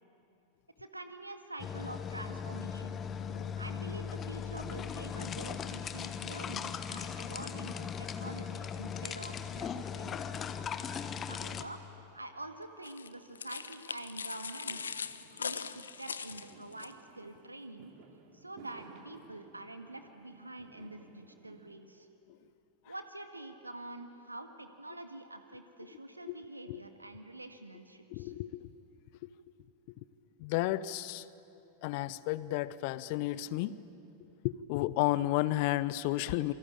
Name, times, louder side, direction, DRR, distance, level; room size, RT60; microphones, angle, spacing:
voice 1, 0.8-3.0 3.6-10.3 11.2-11.8 12.1-15.0 15.4-17.9 18.3-22.1 22.9-28.3, right 2 dB, 85° right, 7 dB, 1.9 m, -46 dB
sound 1, 1.6-11.6, left 7 dB, 25° left, 1.2 m, -38 dB
sound 2, 12.8-16.9, left 6 dB, 70° left, 0.8 m, -40 dB
Fireworks, 14.6-21.7, right 6 dB, 50° right, 2.8 m, -57 dB
voice 2, 28.1-28.7 29.2-29.3 30.4-31.3 31.8-33.8 34.4-36.5, left 16 dB, 45° left, 18 dB, 0.8 m, -32 dB
27.5 x 24.0 x 8.8 m, 2.8 s
figure-of-eight pair, 90°, 0 cm